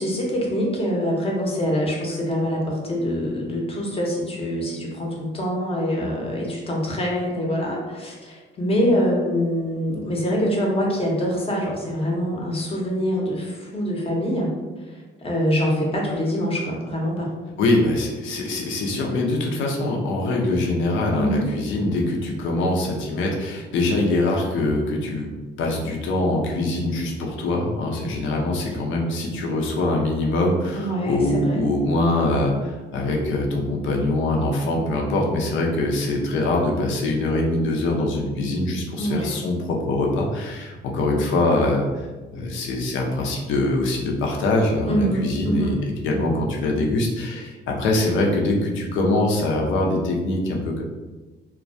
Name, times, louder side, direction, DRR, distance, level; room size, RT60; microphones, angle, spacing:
voice 1, 0.0-14.5 14.9-17.3 21.1-21.5 30.7-31.6 39.0-39.3 44.9-45.8, equal, 30° left, -2 dB, 0.7 m, -24 dB
voice 2, 17.6-25.3 25.6-42.1 42.3-50.8, left 2 dB, 75° left, 0 dB, 0.5 m, -23 dB
2.2 x 2.1 x 2.6 m, 1.2 s
cardioid pair, 90°, 20 cm